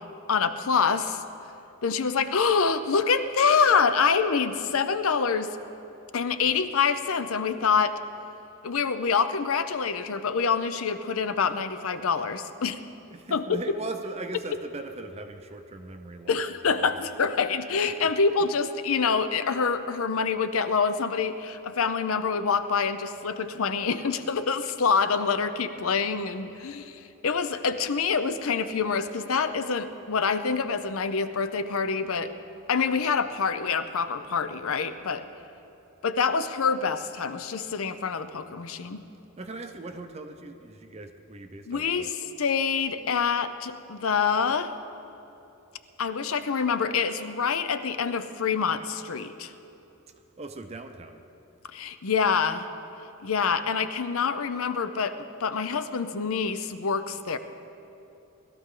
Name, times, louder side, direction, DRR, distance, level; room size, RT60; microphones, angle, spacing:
voice 1, 0.3-1.2 1.8-5.6 6.1-8.0 8.6-12.8 13.3-13.6 16.3-32.3 32.7-35.3 36.0-39.0 41.7-44.7 46.0-49.5 51.7-52.7 53.2-57.4, left 5 dB, 75° left, 11 dB, 0.6 m, -26 dB
voice 2, 13.1-17.0 17.7-18.5 39.4-42.1 50.4-51.2, right 2 dB, 30° right, 6 dB, 0.5 m, -40 dB
20.5 x 13.5 x 3.8 m, 2.9 s
head